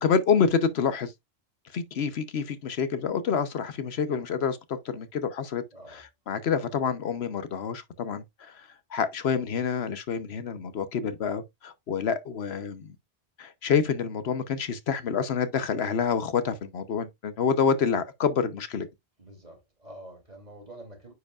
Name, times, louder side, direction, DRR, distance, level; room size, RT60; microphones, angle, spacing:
voice 1, 0.0-1.1 1.7-4.6 4.8-5.6 5.9-8.5 8.9-12.9 13.4-18.9, left 6 dB, 75° left, 1.1 m, -27 dB
voice 2, 5.7-6.0 19.2-21.1, right 1 dB, 40° right, 2.8 m, -47 dB
9.5 x 4.9 x 2.4 m
omnidirectional pair, 1.1 m